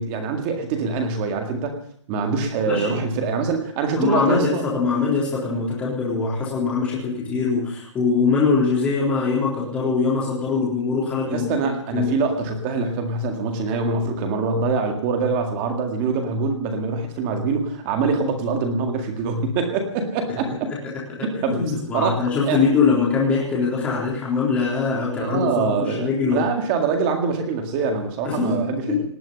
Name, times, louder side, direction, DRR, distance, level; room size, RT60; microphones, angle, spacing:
voice 1, 0.0-1.8 2.1-4.6 11.3-20.7 21.2-21.6 21.9-22.6 25.2-29.0, right 4 dB, 15° right, 5 dB, 1.9 m, -24 dB
voice 2, 2.7-3.0 3.9-11.5 11.9-12.1 20.5-20.6 21.1-26.4 28.2-28.6 28.9-29.0, left 4 dB, 10° left, -5 dB, 3.7 m, -22 dB
19.0 x 7.6 x 10.0 m, 0.62 s
hypercardioid pair, 180°, 15 cm